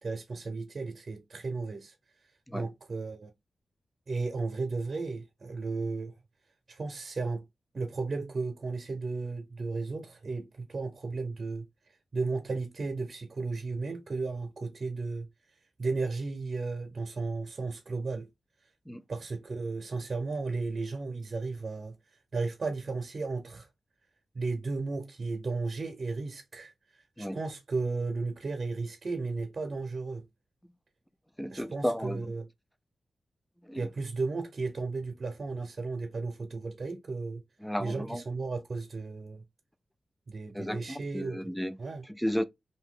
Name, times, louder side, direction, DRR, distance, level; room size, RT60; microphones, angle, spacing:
voice 1, 0.0-1.9 2.5-3.3 4.1-6.2 6.7-7.4 7.7-11.6 12.1-15.3 15.8-18.3 19.1-21.9 22.3-23.7 24.3-30.2 31.5-32.4 33.8-37.4 37.8-39.4 40.3-41.4 41.8-42.0, right 3 dB, 50° right, 0.7 m, -34 dB
voice 2, 31.4-32.3 33.6-33.9 37.6-38.2 40.5-41.8 42.1-42.4, equal, 5° left, 0.4 m, -33 dB
2.7 x 2.6 x 3.6 m
wide cardioid pair, 90°, 0 cm